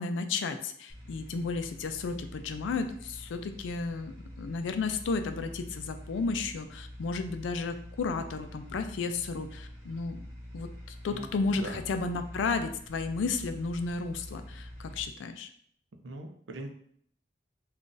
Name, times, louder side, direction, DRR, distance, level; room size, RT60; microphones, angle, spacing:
voice 1, 0.0-10.2 10.5-10.7 11.0-15.5, left 4 dB, 85° left, 8 dB, 0.4 m, -33 dB
sound 1, 0.9-15.0, equal, 10° right, 1.1 m, -46 dB
voice 2, 11.1-11.8 16.0-16.7, right 2 dB, 80° right, 4 dB, 0.5 m, -41 dB
2.5 x 2.4 x 3.8 m, 0.64 s
head